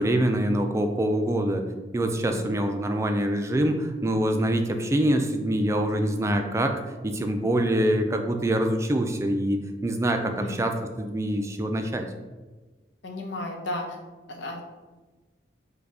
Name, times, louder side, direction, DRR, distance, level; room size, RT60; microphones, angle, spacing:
voice 1, 0.0-1.6 1.9-6.7 7.0-10.7 11.0-12.1, right 1 dB, 15° right, 5 dB, 0.3 m, -25 dB
voice 2, 13.0-14.0 14.3-14.6, left 2 dB, 85° left, 2 dB, 0.8 m, -34 dB
4.7 x 2.3 x 4.8 m, 1.3 s
head